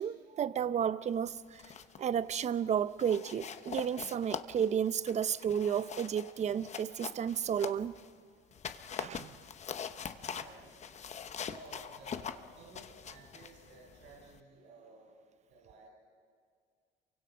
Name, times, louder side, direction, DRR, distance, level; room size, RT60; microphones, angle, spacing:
voice 1, 0.0-1.6 2.0-7.9 9.0-9.4, right 8 dB, 35° right, 0.6 m, -32 dB
sound 1, 1.4-2.0 2.3-2.6 3.0-8.1 8.5-14.4, left 7 dB, 35° left, 0.9 m, -43 dB
voice 2, 9.8-10.8 11.3-15.2 15.5-15.9, right 2 dB, 85° right, 6.8 m, -55 dB
28.5 x 24.0 x 5.6 m
cardioid pair, 130°, 19 cm